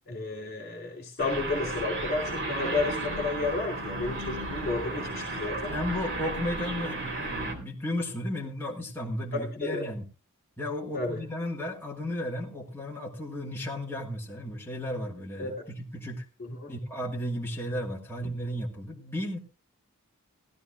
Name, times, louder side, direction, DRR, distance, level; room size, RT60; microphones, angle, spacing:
voice 1, 0.1-5.7 9.3-9.8 10.9-11.2 15.4-15.7 16.4-16.7, left 3 dB, 45° left, 0 dB, 2.8 m, -32 dB
sound 1, 1.2-7.5, right 2 dB, 55° right, 3.4 m, -34 dB
voice 2, 5.7-10.0 10.6-16.3 16.7-19.4, left 1 dB, 10° left, -2 dB, 1.7 m, -34 dB
17.5 x 14.0 x 2.4 m, 0.32 s
head